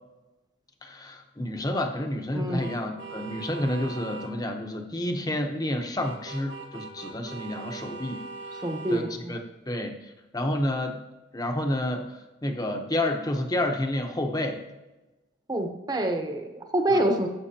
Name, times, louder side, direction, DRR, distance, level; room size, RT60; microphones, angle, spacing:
voice 1, 0.8-8.2 8.5-8.6 8.9-9.4 9.7-9.9 10.3-11.0 11.3-12.1 12.4-14.6 16.9-17.0, left 1 dB, 20° left, 4 dB, 1.0 m, -29 dB
sound 1, 2.6-4.3 6.0-9.0, right 4 dB, 80° right, 2.3 m, -41 dB
voice 2, 8.6-9.4 15.5-17.3, right 1 dB, 20° right, 4 dB, 1.1 m, -26 dB
16.5 x 7.8 x 2.9 m, 1.1 s
head